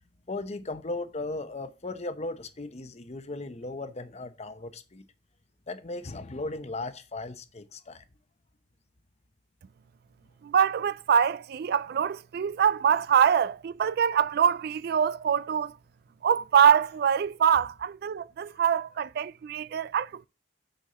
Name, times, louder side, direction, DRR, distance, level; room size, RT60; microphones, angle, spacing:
voice 1, 0.3-5.0 5.7-8.0 17.6-17.7 18.5-18.9 19.7-19.8, left 2 dB, 40° left, 0.8 m, -37 dB
voice 2, 10.4-15.7 16.2-20.3, right 8 dB, 60° right, 0.3 m, -24 dB
6.5 x 4.6 x 6.7 m
head